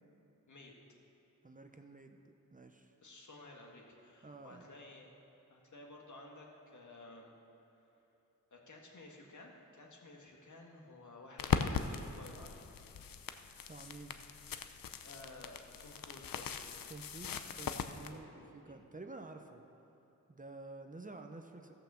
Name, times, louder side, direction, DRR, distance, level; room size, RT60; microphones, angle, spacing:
voice 1, 1.4-2.9 4.2-4.7 13.7-14.2 16.9-19.6 20.3-21.7, right 3 dB, 25° right, 5 dB, 0.7 m, -51 dB
voice 2, 3.0-5.1 5.5-7.3 8.5-12.7 15.0-16.6 18.1-18.5, left 2 dB, 60° left, 0 dB, 1.7 m, -54 dB
sound 1, 11.4-18.1, left 7 dB, 90° left, 0.6 m, -39 dB
15.0 x 5.9 x 6.9 m, 2.9 s
wide cardioid pair, 100°, 33 cm